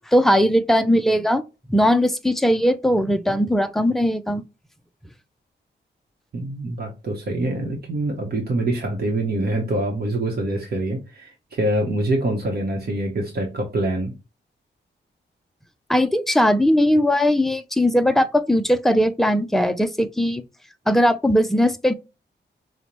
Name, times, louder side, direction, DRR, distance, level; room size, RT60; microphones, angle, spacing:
voice 1, 0.1-1.4 1.7-4.4 15.9-20.4 20.9-21.9, equal, ahead, 0.3 m, -19 dB
voice 2, 6.3-14.1, right 1 dB, 55° right, 0.9 m, -25 dB
5.2 x 2.1 x 2.9 m
wide cardioid pair, 165°, 19 cm